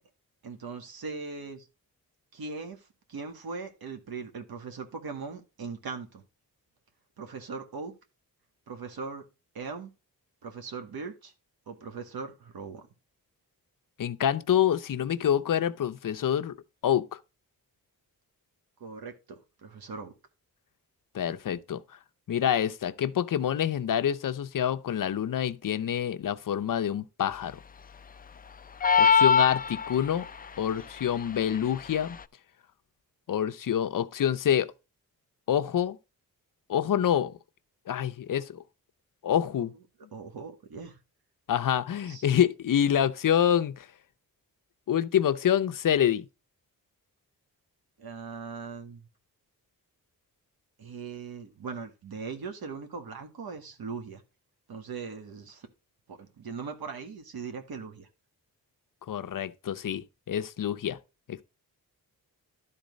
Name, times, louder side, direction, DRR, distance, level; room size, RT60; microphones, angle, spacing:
voice 1, 0.4-1.7 2.3-6.2 7.2-7.9 8.7-9.2 9.5-9.9 10.4-11.3 11.7-12.9 18.8-20.1 39.6-39.7 40.1-41.0 42.1-42.3 48.0-49.1 50.8-54.2 54.7-55.7 56.1-58.1, right 5 dB, 90° right, 2.0 m, -40 dB
voice 2, 14.0-16.5 16.8-17.2 21.1-21.8 22.3-27.6 29.0-30.3 30.6-32.2 33.3-34.7 35.5-36.0 36.7-37.3 37.9-38.6 39.2-39.7 41.5-43.9 44.9-46.3 59.1-61.0 61.3-61.4, left 9 dB, 65° left, 0.8 m, -27 dB
sound 1, 28.8-30.3, left 6 dB, 25° left, 0.3 m, -21 dB
12.0 x 4.1 x 5.2 m
wide cardioid pair, 130°, 35 cm